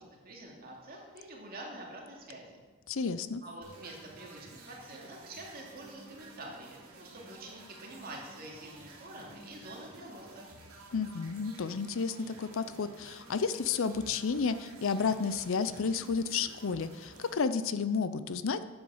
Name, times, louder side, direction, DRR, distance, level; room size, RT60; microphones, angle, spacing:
voice 1, 0.0-2.6 3.4-10.5, right 1 dB, 45° right, -2 dB, 2.6 m, -47 dB
voice 2, 2.9-3.4 10.9-18.6, left 5 dB, 65° left, 12 dB, 0.6 m, -31 dB
sound 1, 3.6-17.3, right 2 dB, 90° right, 2.5 m, -52 dB
9.5 x 8.0 x 7.1 m, 1.3 s
head